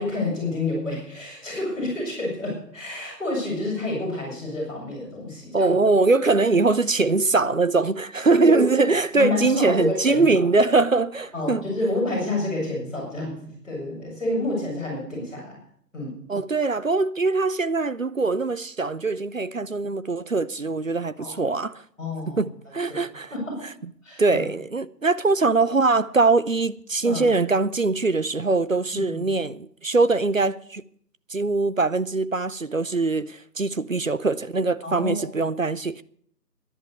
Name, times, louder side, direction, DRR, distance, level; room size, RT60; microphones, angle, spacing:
voice 1, 0.0-5.7 8.4-8.6 9.1-10.2 11.3-15.6 15.9-16.2 21.2-21.4 22.0-22.4 23.3-23.6 24.0-24.4 27.0-27.3 28.9-29.2 34.8-35.3, left 2 dB, ahead, 5.1 m, -29 dB
voice 2, 5.5-11.6 16.3-21.8 22.4-23.3 24.2-30.8 31.3-36.0, right 3 dB, 55° right, 0.5 m, -22 dB
12.0 x 11.0 x 6.6 m
figure-of-eight pair, 165°, 50 cm